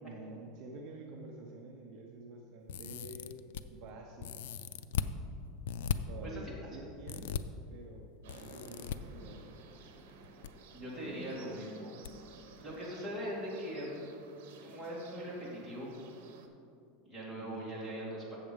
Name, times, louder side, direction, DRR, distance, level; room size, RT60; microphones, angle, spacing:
voice 1, 0.0-3.4 3.7-4.4 6.1-7.4 7.7-9.4 17.3-17.8, right 2 dB, 45° right, 1 dB, 0.8 m, -48 dB
sound 1, 2.7-3.6 4.2-5.1 5.7-6.0 7.1-7.4 8.3-9.0 10.1-10.5 10.8-10.9 12.0-12.1 12.5-12.6, left 8 dB, 85° left, 0.4 m, -37 dB
voice 2, 6.2-6.8 10.7-11.9 12.6-14.1 14.6-15.9 17.0-18.4, equal, 5° right, -7 dB, 2.3 m, -41 dB
sound 2, 8.2-16.5, right 5 dB, 80° right, 0.9 m, -54 dB
7.4 x 7.2 x 5.2 m, 2.5 s
supercardioid pair, 160°, 0 cm